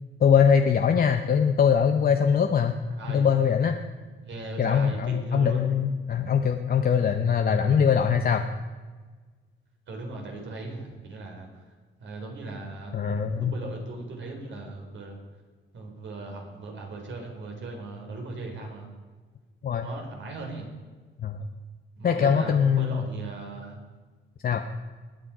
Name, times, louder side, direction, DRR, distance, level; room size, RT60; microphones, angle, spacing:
voice 1, 0.2-2.8 3.1-3.8 4.6-8.4 12.9-13.5 19.6-19.9 21.2-21.4 22.0-23.0 24.4-24.6, left 7 dB, 45° left, 6 dB, 0.8 m, -22 dB
voice 2, 3.0-3.3 4.2-5.7 7.7-7.8 9.9-11.6 12.0-15.2 15.7-18.9 19.8-20.7 22.0-23.8, right 3 dB, 60° right, 1 dB, 4.1 m, -38 dB
20.5 x 8.9 x 4.9 m, 1.4 s
cardioid pair, 105°, 21 cm